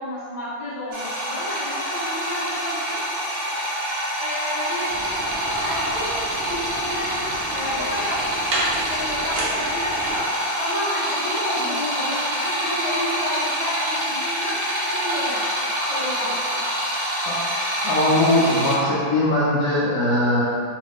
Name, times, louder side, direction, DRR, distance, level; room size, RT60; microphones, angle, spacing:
voice 1, 0.0-3.0 4.2-4.9 5.6-6.2 6.5-7.1 7.5-10.3 10.6-14.5 14.9-16.4, left 1 dB, 35° left, -13 dB, 0.6 m, -31 dB
sound 1, 0.9-18.8, equal, 85° right, 0.6 m, -26 dB
sound 2, 4.9-10.2, right 1 dB, 65° right, 1.0 m, -32 dB
voice 2, 17.8-20.4, left 1 dB, 80° left, -8 dB, 0.8 m, -20 dB
3.0 x 2.5 x 3.3 m, 2.2 s
omnidirectional pair, 2.1 m